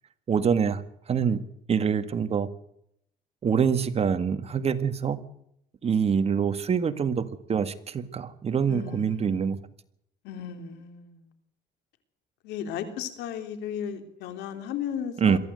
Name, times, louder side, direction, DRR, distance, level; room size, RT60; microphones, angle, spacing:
voice 1, 0.3-1.4 1.7-2.5 3.4-5.2 5.8-9.6 15.2-15.4, right 6 dB, 35° right, 10 dB, 1.8 m, -25 dB
voice 2, 8.7-9.5 10.2-11.3 12.4-15.4, left 8 dB, 85° left, 7 dB, 3.3 m, -35 dB
23.0 x 14.5 x 7.9 m, 0.72 s
cardioid pair, 110°, 17 cm